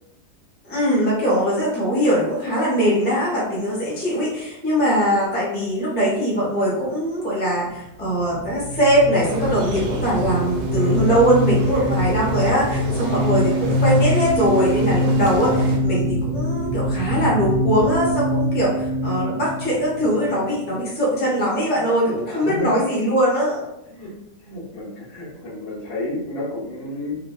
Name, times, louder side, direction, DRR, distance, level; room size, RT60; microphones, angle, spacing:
voice 1, 0.7-18.7 19.0-23.7, equal, 10° left, -6 dB, 0.6 m, -21 dB
sound 1, 8.3-20.7, equal, 60° left, 0.9 m, -23 dB
sound 2, 9.2-15.8, right 2 dB, 75° right, 1.0 m, -34 dB
voice 2, 9.6-9.9 13.0-13.2 15.3-15.6 19.0-19.2 22.3-22.7 23.9-24.1 24.4-27.2, left 2 dB, 75° left, -7 dB, 1.5 m, -32 dB
3.2 x 2.2 x 2.3 m, 0.87 s
omnidirectional pair, 1.5 m